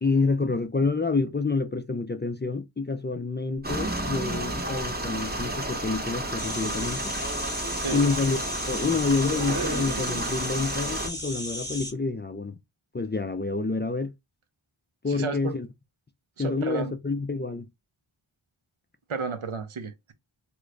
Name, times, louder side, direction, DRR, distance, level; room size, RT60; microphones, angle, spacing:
voice 1, 0.0-7.1 7.9-12.6 12.9-14.1 15.0-15.7 16.4-17.7, left 4 dB, 25° left, 0.4 m, -28 dB
sound 1, 3.6-11.1, right 1 dB, 20° right, 0.8 m, -31 dB
sound 2, 3.6-4.1 5.5-10.8, right 3 dB, 50° right, 1.1 m, -41 dB
sound 3, 6.4-11.9, left 1 dB, 5° left, 1.0 m, -35 dB
voice 2, 7.7-8.1 15.1-15.5 16.4-16.9 19.1-20.1, right 5 dB, 80° right, 0.7 m, -32 dB
3.0 x 2.5 x 3.2 m
wide cardioid pair, 50°, 49 cm